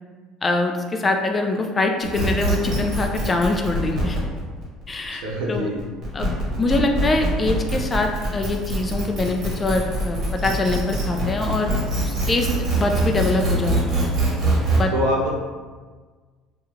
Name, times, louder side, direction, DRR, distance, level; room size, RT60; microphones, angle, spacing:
voice 1, 0.4-4.2 4.9-5.7 6.1-12.5 12.8-14.0 14.7-14.9, left 2 dB, 20° left, 3 dB, 0.3 m, -24 dB
sound 1, 2.0-14.8, right 2 dB, 50° right, 0.9 m, -24 dB
voice 2, 5.1-5.8 14.9-15.3, equal, 90° right, -2 dB, 0.6 m, -24 dB
2.3 x 2.2 x 3.1 m, 1.5 s
cardioid pair, 120°, 0 cm